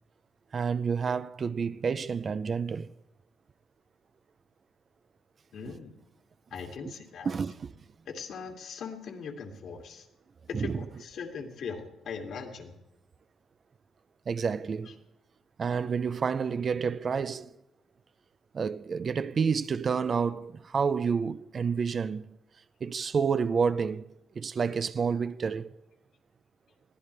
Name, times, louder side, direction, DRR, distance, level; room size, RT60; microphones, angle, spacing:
voice 1, 0.5-2.9 6.8-6.9 7.2-7.7 10.5-10.8 14.3-15.0 15.6-17.5 18.5-22.3 22.8-25.7, right 6 dB, 45° right, 0.5 m, -29 dB
voice 2, 5.5-5.9 6.5-7.3 8.1-10.1 10.5-12.7, left 6 dB, 70° left, 2.6 m, -40 dB
21.5 x 15.5 x 3.4 m
cardioid pair, 90°, 0 cm